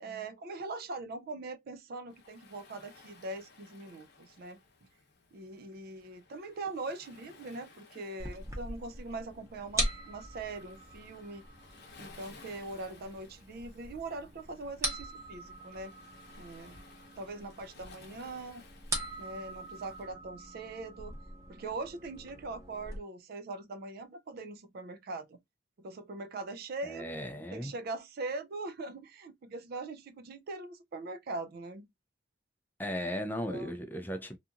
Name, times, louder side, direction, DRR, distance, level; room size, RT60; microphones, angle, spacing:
voice 1, 0.0-4.6 5.3-11.4 12.0-15.9 16.4-16.8 17.2-18.6 19.2-21.2 21.5-25.4 25.8-27.1 27.5-31.9 33.5-33.8, right 3 dB, 55° right, 0.4 m, -41 dB
Waves surf, 2.1-20.1, left 4 dB, 60° left, 0.8 m, -58 dB
sound 1, 8.2-23.0, right 1 dB, 15° right, 0.8 m, -41 dB
voice 2, 26.8-27.7 32.8-34.4, equal, 10° left, 0.4 m, -36 dB
2.7 x 2.4 x 2.4 m
head